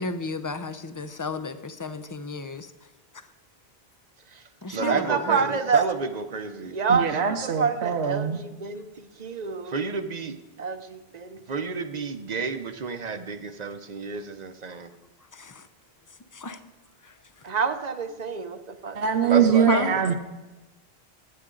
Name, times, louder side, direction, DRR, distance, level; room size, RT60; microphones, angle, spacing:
voice 1, 0.0-2.7 4.6-5.4 15.3-15.6 16.3-16.6 17.0-17.1 19.7-20.0, left 3 dB, 25° left, 10 dB, 0.5 m, -32 dB
voice 2, 4.7-14.9 17.4-20.1, right 5 dB, 45° right, 8 dB, 0.8 m, -29 dB
voice 3, 6.9-8.4 18.9-20.1, right 7 dB, 75° right, 4 dB, 1.0 m, -23 dB
18.0 x 8.6 x 3.8 m, 1.1 s
omnidirectional pair, 1.1 m